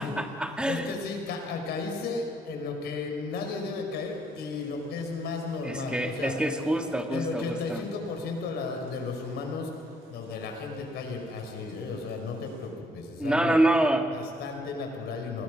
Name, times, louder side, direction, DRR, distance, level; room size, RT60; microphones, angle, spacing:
voice 1, 0.0-0.9 5.6-7.8 13.2-14.1, right 1 dB, 5° right, 5 dB, 2.1 m, -26 dB
voice 2, 0.7-6.3 7.1-9.7 10.1-13.6 14.1-15.4, left 4 dB, 75° left, 3 dB, 5.3 m, -34 dB
sound 1, 3.9-12.7, right 3 dB, 85° right, 6.9 m, -52 dB
29.5 x 20.5 x 6.4 m, 2.6 s
cardioid pair, 110°, 17 cm